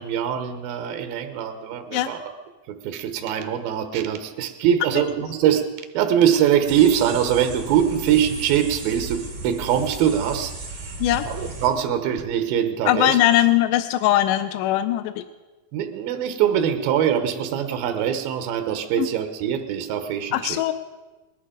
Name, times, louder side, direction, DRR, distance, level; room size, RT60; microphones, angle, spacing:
voice 1, 0.0-2.2 2.7-5.7 5.9-11.0 11.2-13.2 15.7-20.6, right 9 dB, 90° right, 7 dB, 2.7 m, -23 dB
sound 1, 6.7-11.7, right 3 dB, 35° right, 2.9 m, -35 dB
voice 2, 12.9-15.2 19.0-19.1 20.3-20.7, left 13 dB, 80° left, 11 dB, 1.9 m, -20 dB
20.0 x 11.0 x 5.0 m, 1.2 s
omnidirectional pair, 4.2 m